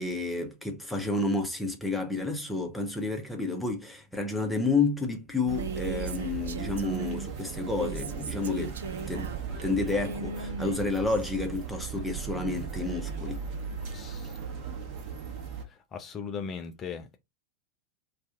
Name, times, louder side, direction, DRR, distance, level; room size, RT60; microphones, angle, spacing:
voice 1, 0.0-8.8 9.1-9.3 9.6-13.4, left 3 dB, 5° left, 0.8 m, -30 dB
Female speech woman speaking, 5.4-7.3 7.6-11.4, right 4 dB, 65° right, 0.4 m, -38 dB
sound 1, 5.5-15.6, right 7 dB, 40° right, 1.0 m, -37 dB
voice 2, 13.9-14.3 15.9-17.2, left 6 dB, 25° left, 0.4 m, -38 dB
2.5 x 2.4 x 3.7 m
figure-of-eight pair, 90°, 0 cm